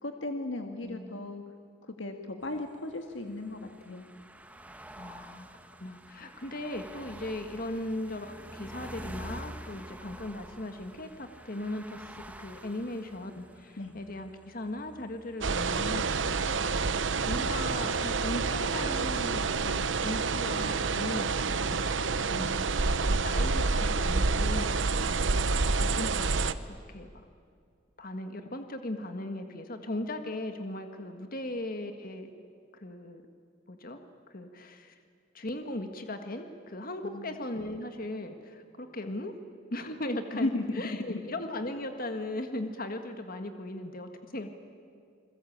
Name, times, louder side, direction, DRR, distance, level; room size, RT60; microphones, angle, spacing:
voice 1, 0.0-1.4 1.9-4.0 13.8-13.9 37.0-37.3 40.3-40.8 41.1-41.2, left 2 dB, 80° left, 5 dB, 1.8 m, -35 dB
voice 2, 0.8-1.3 5.0-5.5 5.8-16.2 17.3-21.9 22.2-22.7 23.2-25.5 25.8-27.2 28.0-32.3 32.7-33.2 33.7-34.0 34.3-35.0 35.3-39.3 39.7-44.5, left 1 dB, 50° left, 6 dB, 1.7 m, -38 dB
sound 1, 2.4-18.2, right 1 dB, 10° right, 1.3 m, -48 dB
sound 2, 15.4-26.5, right 4 dB, 75° right, 0.9 m, -28 dB
28.5 x 21.5 x 8.7 m, 2.2 s
head